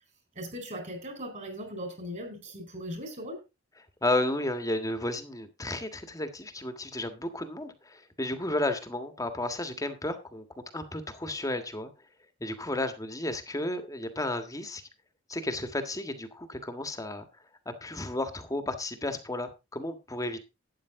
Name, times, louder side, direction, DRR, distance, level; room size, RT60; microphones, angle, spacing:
voice 1, 0.3-3.4, equal, 40° right, 4.2 m, -38 dB
voice 2, 4.0-10.4 10.7-11.9 12.4-14.8 15.3-17.2 17.6-20.4, left 1 dB, 20° left, 1.6 m, -33 dB
12.5 x 9.4 x 3.7 m
head